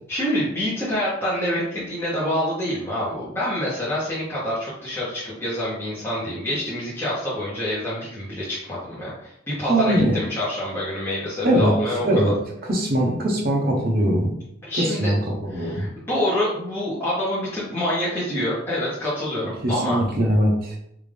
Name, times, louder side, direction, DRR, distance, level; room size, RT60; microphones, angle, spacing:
voice 1, 0.1-12.3 14.6-15.1 15.5-20.0, left 1 dB, 10° left, -9 dB, 0.9 m, -27 dB
voice 2, 9.7-10.2 11.4-11.7 12.0-12.3 12.7-14.3 14.8-15.9 19.6-20.8, right 1 dB, 50° right, -1 dB, 0.9 m, -21 dB
3.5 x 2.5 x 3.4 m, 0.76 s
head